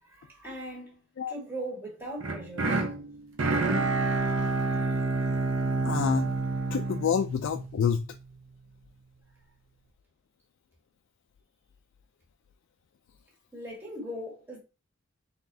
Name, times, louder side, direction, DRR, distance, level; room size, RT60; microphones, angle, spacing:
voice 1, 0.0-1.0 1.3-2.8 13.5-14.6, right 1 dB, 10° right, 1.6 m, -39 dB
sound 1, 2.2-8.3, right 3 dB, 70° right, 0.8 m, -28 dB
voice 2, 5.8-6.3 6.7-8.0, left 7 dB, 65° left, 0.3 m, -27 dB
4.0 x 3.5 x 2.7 m
head